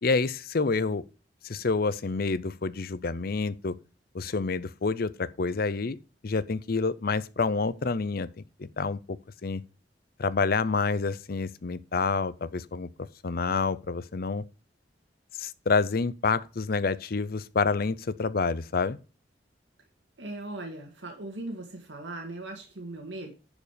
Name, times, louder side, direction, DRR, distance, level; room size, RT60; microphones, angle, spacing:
voice 1, 0.0-1.0 1.4-3.8 4.1-6.0 6.2-8.3 8.6-9.2 9.4-9.6 10.2-12.9 13.2-14.4 15.4-19.0, left 4 dB, 55° left, 0.6 m, -28 dB
voice 2, 20.2-23.3, right 2 dB, 85° right, 1.9 m, -39 dB
10.5 x 5.0 x 5.1 m
head